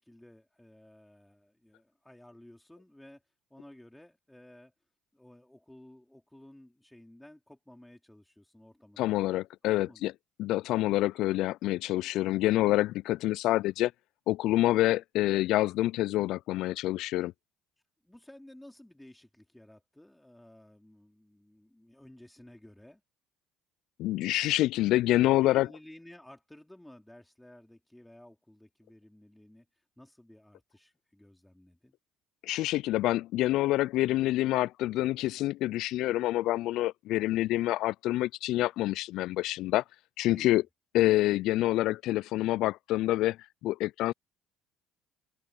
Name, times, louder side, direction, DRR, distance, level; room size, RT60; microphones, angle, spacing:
voice 1, 0.0-3.2 3.5-4.7 5.1-9.2 9.6-10.1 18.0-23.0 25.4-32.0 37.2-37.4 40.3-40.6, left 1 dB, 5° left, 3.6 m, -54 dB
voice 2, 9.0-10.1 10.4-13.9 14.3-17.3 24.0-25.7 32.4-39.8 40.2-40.6 40.9-43.4 43.6-44.1, left 16 dB, 70° left, 0.3 m, -27 dB
open air
hypercardioid pair, 70°, 0 cm